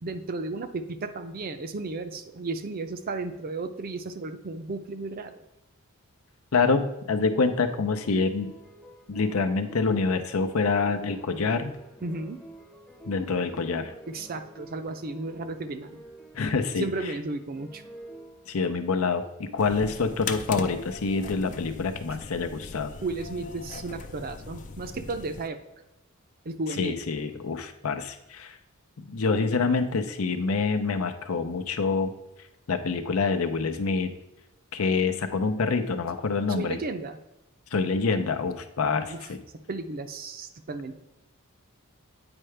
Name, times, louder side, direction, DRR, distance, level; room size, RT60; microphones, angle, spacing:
voice 1, 0.0-5.4 12.0-12.4 14.1-16.0 16.8-17.8 23.0-25.6 26.4-27.0 36.5-37.2 39.1-39.3 39.7-41.0, right 3 dB, 45° right, 9 dB, 0.5 m, -34 dB
voice 2, 6.5-8.6 9.1-11.8 13.0-13.9 16.3-16.9 18.5-22.9 26.8-28.6 29.0-32.1 32.7-34.1 34.7-36.8 37.7-39.4, left 4 dB, 80° left, 9 dB, 0.6 m, -26 dB
sound 1, 7.8-18.9 19.4-22.2, right 1 dB, 5° left, 0.7 m, -49 dB
sound 2, 19.6-25.5, left 4 dB, 35° left, 0.4 m, -39 dB
8.8 x 4.7 x 3.3 m, 0.95 s
head